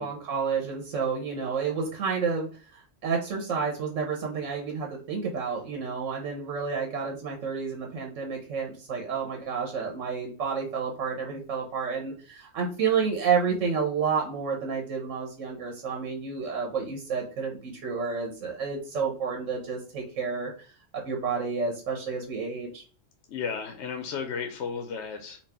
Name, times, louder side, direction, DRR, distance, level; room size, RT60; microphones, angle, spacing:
voice 1, 0.0-20.5 20.9-22.8, right 5 dB, 85° right, 1 dB, 1.2 m, -30 dB
voice 2, 23.3-25.4, left 6 dB, 70° left, 6 dB, 0.9 m, -34 dB
4.0 x 2.4 x 3.4 m, 0.40 s
omnidirectional pair, 1.3 m